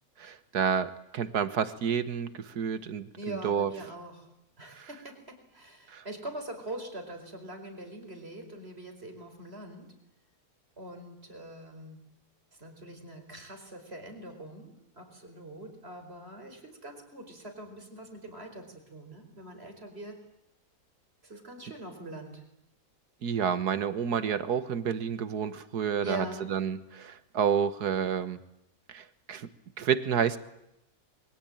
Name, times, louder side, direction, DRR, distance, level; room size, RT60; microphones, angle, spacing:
voice 1, 0.2-3.7 4.8-4.9 5.9-6.0 23.2-28.4 28.9-29.5 29.8-30.4, right 7 dB, 85° right, 12 dB, 1.8 m, -30 dB
voice 2, 3.2-10.0 10.8-12.0 12.6-20.2 21.2-22.4 26.0-26.5, right 1 dB, 40° right, 5 dB, 5.0 m, -43 dB
27.5 x 22.5 x 8.9 m, 0.84 s
omnidirectional pair, 1.6 m